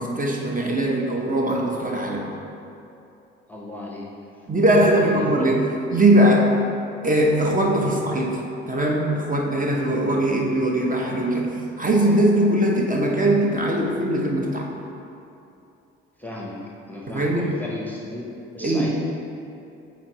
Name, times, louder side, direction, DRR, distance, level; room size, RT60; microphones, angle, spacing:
voice 1, 0.0-2.3 4.5-5.6 5.9-6.6 7.0-8.4 8.7-11.5 11.8-14.7 17.1-17.6 18.6-18.9, right 1 dB, 25° right, -1 dB, 1.0 m, -20 dB
voice 2, 3.5-4.1 4.7-5.5 7.8-7.9 16.2-16.6 16.9-18.2 18.5-18.9, left 1 dB, 5° left, -4 dB, 1.0 m, -34 dB
8.5 x 4.1 x 3.0 m, 2.6 s
hypercardioid pair, 40°, 33 cm